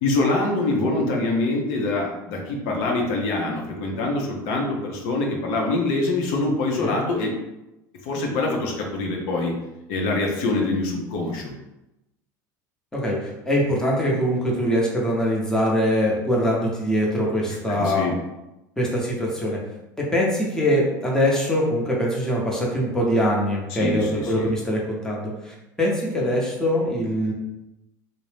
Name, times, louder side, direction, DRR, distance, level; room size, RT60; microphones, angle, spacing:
voice 1, 0.0-7.3 8.0-9.5 9.9-11.5 17.5-18.1 23.7-24.5, left 2 dB, 65° left, 0 dB, 0.6 m, -25 dB
voice 2, 12.9-18.1 18.8-19.6 20.0-27.3, equal, 5° left, -4 dB, 0.8 m, -23 dB
2.6 x 2.0 x 3.2 m, 0.93 s
hypercardioid pair, 90°, 10 cm